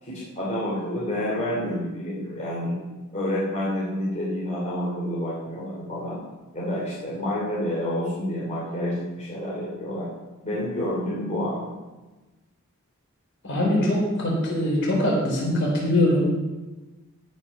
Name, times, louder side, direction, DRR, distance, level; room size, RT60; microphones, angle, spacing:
voice 1, 0.0-2.8 3.1-6.2 6.5-10.1 10.4-11.6, left 1 dB, 30° left, -7 dB, 2.8 m, -29 dB
voice 2, 13.4-16.4, left 1 dB, 55° left, -3 dB, 4.2 m, -22 dB
16.5 x 5.6 x 5.7 m, 1.2 s
head